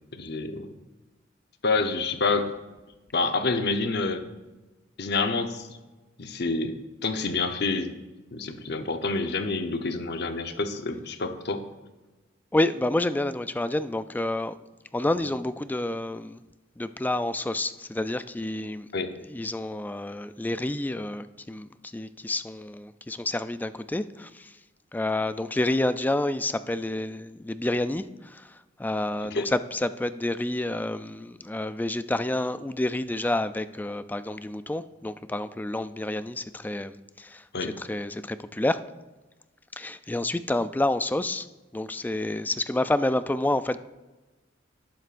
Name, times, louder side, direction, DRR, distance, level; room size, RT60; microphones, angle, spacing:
voice 1, 0.1-0.7 1.6-2.5 3.1-4.2 5.0-5.8 6.2-6.8 7.0-8.0 8.3-11.6 18.9-19.1 29.3-29.5 37.5-37.7, left 3 dB, 60° left, 7 dB, 0.9 m, -28 dB
voice 2, 12.5-14.5 14.9-16.4 16.8-18.9 19.3-24.6 24.9-37.5 37.8-38.8 39.7-41.5 41.7-43.8, left 1 dB, 10° left, 12 dB, 0.3 m, -29 dB
18.5 x 7.7 x 2.5 m, 1.1 s
head